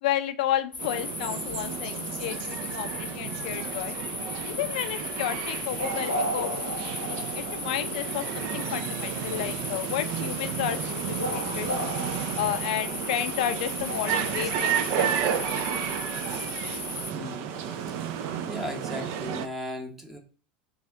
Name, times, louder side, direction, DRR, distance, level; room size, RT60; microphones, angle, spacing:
voice 1, 0.0-3.9 4.4-6.5 6.8-11.7 12.4-14.7 15.0-15.4, left 12 dB, 60° left, 10 dB, 0.4 m, -32 dB
sound 1, 0.7-17.1, left 2 dB, 85° left, 0.8 m, -35 dB
sound 2, 0.8-19.5, right 9 dB, 50° right, 0.4 m, -32 dB
voice 2, 17.1-18.1 18.5-20.2, left 1 dB, 5° right, 2 dB, 0.8 m, -37 dB
4.0 x 2.3 x 3.8 m, 0.39 s
figure-of-eight pair, 80°, 5 cm